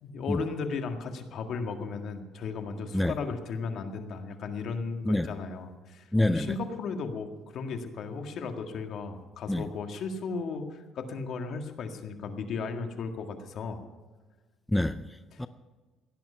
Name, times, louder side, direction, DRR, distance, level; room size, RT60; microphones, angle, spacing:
voice 1, 0.0-13.8, left 4 dB, 60° left, 1.8 m, -35 dB
voice 2, 6.1-6.6 9.5-9.7 14.7-15.5, left 1 dB, 5° left, 0.5 m, -27 dB
16.5 x 11.0 x 5.6 m
cardioid pair, 120°, 0 cm